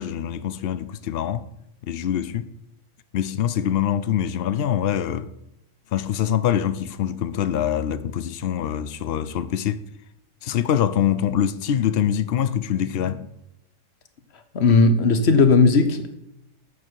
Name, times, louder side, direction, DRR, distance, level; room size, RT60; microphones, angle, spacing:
voice 1, 0.0-1.5 1.9-2.5 3.1-5.3 5.9-9.8 10.4-13.3, left 9 dB, 75° left, 0.5 m, -24 dB
voice 2, 14.5-16.2, left 4 dB, 45° left, 1.2 m, -16 dB
12.0 x 8.2 x 4.7 m
omnidirectional pair, 1.7 m